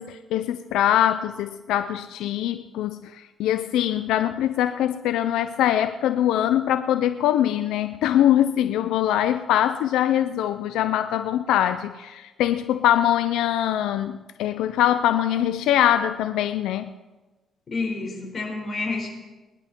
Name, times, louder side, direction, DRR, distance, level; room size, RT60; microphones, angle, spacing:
voice 1, 0.0-16.9, left 11 dB, 90° left, 10 dB, 0.5 m, -23 dB
voice 2, 17.7-19.1, left 3 dB, 40° left, 0 dB, 5.2 m, -29 dB
21.0 x 11.0 x 4.5 m, 1.2 s
cardioid pair, 90°, 0 cm